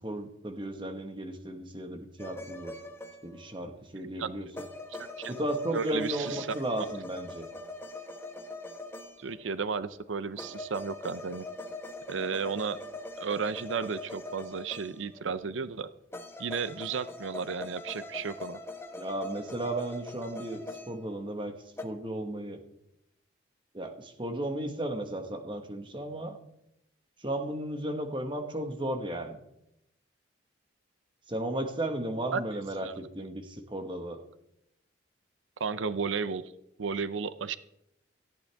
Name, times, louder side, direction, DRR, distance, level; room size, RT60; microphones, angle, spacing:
voice 1, 0.0-2.7 3.2-4.6 5.3-7.4 19.0-20.6 20.9-21.6 21.8-22.6 23.7-26.4 27.2-29.4 31.3-34.2, right 1 dB, 25° right, 6 dB, 1.5 m, -34 dB
sound 1, 2.2-3.6 4.5-9.5 10.4-15.3 16.1-21.4 21.8-21.9, left 2 dB, 15° left, 1.1 m, -42 dB
voice 2, 4.9-5.3 5.7-6.5 9.2-11.5 12.1-12.8 13.2-15.9 16.4-18.6 32.3-32.4 32.8-32.9 35.6-36.5 36.8-37.6, right 5 dB, 90° right, 14 dB, 0.6 m, -33 dB
18.0 x 14.0 x 3.5 m, 0.82 s
head